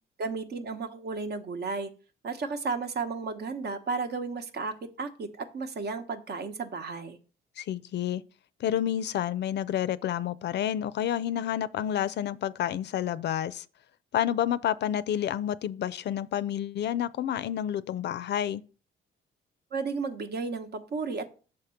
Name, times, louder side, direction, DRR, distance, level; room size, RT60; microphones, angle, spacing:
voice 1, 0.2-1.9 2.2-7.2 19.7-21.3, right 4 dB, 55° right, 1.0 m, -33 dB
voice 2, 7.6-8.2 8.6-13.6 14.1-18.6, left 10 dB, 60° left, 0.4 m, -29 dB
6.5 x 3.6 x 5.6 m
cardioid pair, 90°, 20 cm